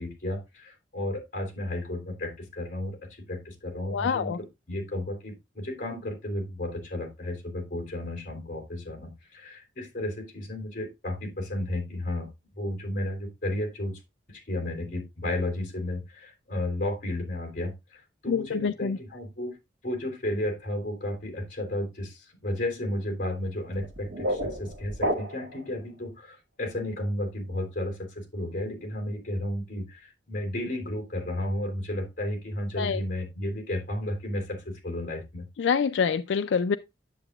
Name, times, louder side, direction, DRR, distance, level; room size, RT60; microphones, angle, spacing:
voice 1, 0.0-12.3 12.6-14.0 14.3-19.5 19.8-35.5, left 1 dB, 50° left, 3.4 m, -33 dB
voice 2, 3.9-4.4 18.3-19.0 32.8-33.0 35.6-36.8, left 6 dB, 85° left, 0.4 m, -26 dB
sound 1, 23.7-25.7, equal, 70° right, 1.4 m, -31 dB
10.0 x 7.9 x 2.4 m
head